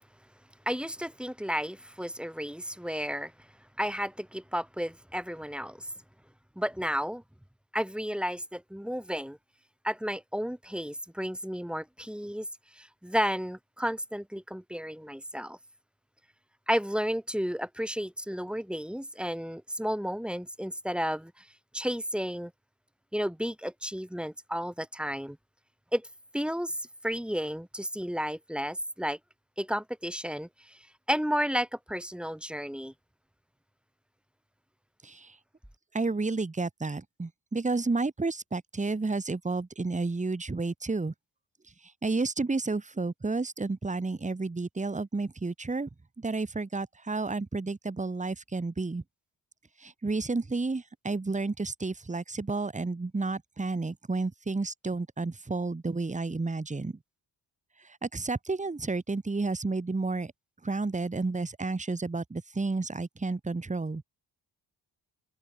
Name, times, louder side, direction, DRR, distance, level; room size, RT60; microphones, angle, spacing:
voice 1, 0.6-3.3 3.8-5.9 6.5-7.2 7.7-9.4 9.8-12.5 12.7-15.6 16.7-21.4 21.7-22.5 23.1-25.4 25.9-26.1 26.3-26.8 27.0-29.2 29.6-30.8 31.1-32.9, equal, ahead, 1.6 m, -32 dB
voice 2, 35.0-35.4 35.9-41.1 41.8-45.9 46.2-49.0 49.8-56.9 57.8-60.3 60.6-64.0, right 3 dB, 15° right, 1.4 m, -31 dB
cardioid pair, 95°, 41 cm